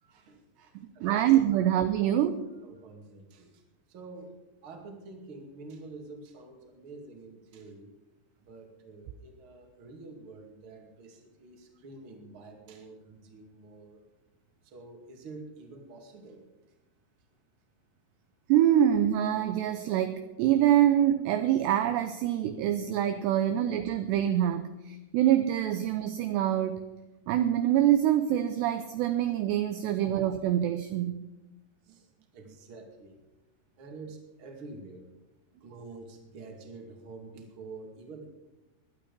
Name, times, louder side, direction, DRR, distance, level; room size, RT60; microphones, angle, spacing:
voice 1, 0.1-1.2 2.6-3.6 3.9-4.4 4.6-7.9 8.4-14.0 14.6-16.4 31.9-32.0 32.3-33.2 33.8-35.0 35.6-38.3, right 3 dB, 40° right, 2 dB, 2.2 m, -47 dB
voice 2, 0.8-2.5 18.5-26.8 27.3-31.2, right 11 dB, 80° right, 9 dB, 2.6 m, -25 dB
18.0 x 11.5 x 5.3 m, 1.0 s
omnidirectional pair, 5.5 m